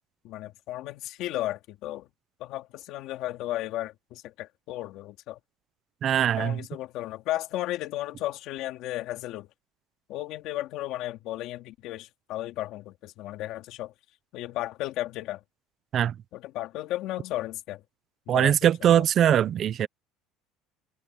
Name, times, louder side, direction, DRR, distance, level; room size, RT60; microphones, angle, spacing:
voice 1, 0.2-2.1 2.4-5.4 6.2-9.5 10.1-13.9 14.3-15.4 16.3-17.8 18.3-18.5 18.8-19.0, left 15 dB, 55° left, 2.6 m, -34 dB
voice 2, 6.0-6.6 15.9-16.2 18.3-19.9, right 10 dB, 35° right, 0.7 m, -22 dB
cardioid pair, 165°, 0 cm